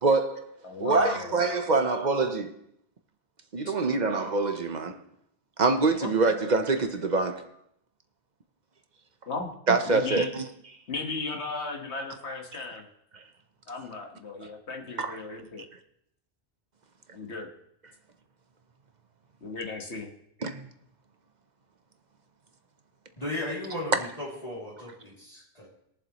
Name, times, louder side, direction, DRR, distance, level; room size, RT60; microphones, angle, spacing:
voice 1, 0.0-0.4 0.8-2.5 3.5-5.0 5.6-7.5 9.7-10.4 15.0-15.2 20.4-20.7, right 3 dB, 45° right, 0.8 m, -25 dB
voice 2, 0.6-1.4 6.0-6.1 9.3-9.5 9.8-10.3 10.9-12.8 13.7-15.6 17.1-17.5 19.4-20.1, left 3 dB, 70° left, 1.7 m, -35 dB
voice 3, 23.2-25.7, left 1 dB, 35° left, 2.7 m, -36 dB
21.5 x 7.3 x 3.0 m
omnidirectional pair, 1.2 m